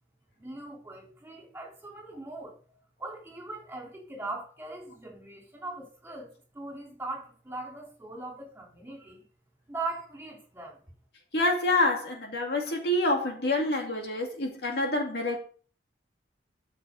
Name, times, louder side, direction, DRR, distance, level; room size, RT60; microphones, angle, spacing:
voice 1, 0.4-9.2 9.7-10.8, right 2 dB, 10° right, 3.4 m, -40 dB
voice 2, 11.3-15.4, left 2 dB, 55° left, 2.3 m, -27 dB
14.0 x 6.3 x 3.9 m
head